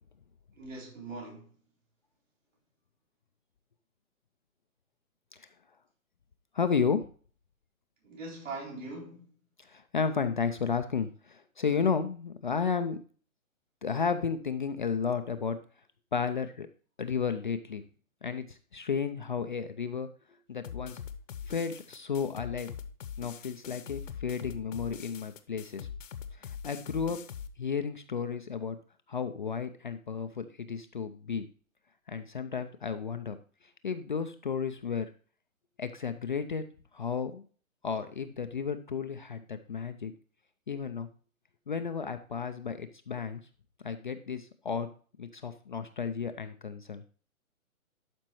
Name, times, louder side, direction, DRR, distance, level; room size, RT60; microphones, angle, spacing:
voice 1, 0.6-1.5 8.0-9.3, right 3 dB, 60° right, 4.2 m, -41 dB
voice 2, 6.5-7.1 9.6-13.0 13.8-15.6 16.1-16.7 17.0-17.8 18.2-20.1 20.5-21.0 21.4-22.7 23.2-25.9 26.3-27.2 27.6-28.8 29.1-31.5 32.1-33.4 33.8-35.1 35.8-36.6 36.9-37.4 37.8-40.1 40.7-41.1 41.7-43.4 43.8-44.9 45.2-47.1, left 6 dB, 40° left, 0.4 m, -33 dB
sound 1, 20.6-27.5, left 7 dB, 65° left, 0.9 m, -42 dB
12.0 x 5.2 x 3.0 m
hypercardioid pair, 145°, 42 cm